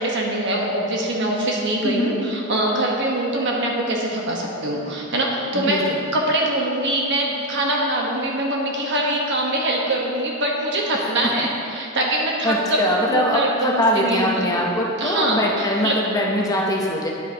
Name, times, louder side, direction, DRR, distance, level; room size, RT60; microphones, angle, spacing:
voice 1, 0.0-5.8 6.1-14.7 15.0-15.9, right 1 dB, 55° right, -1 dB, 1.2 m, -23 dB
voice 2, 5.5-6.0 12.4-17.1, equal, 15° left, -2 dB, 0.8 m, -22 dB
9.9 x 8.2 x 2.9 m, 2.6 s
head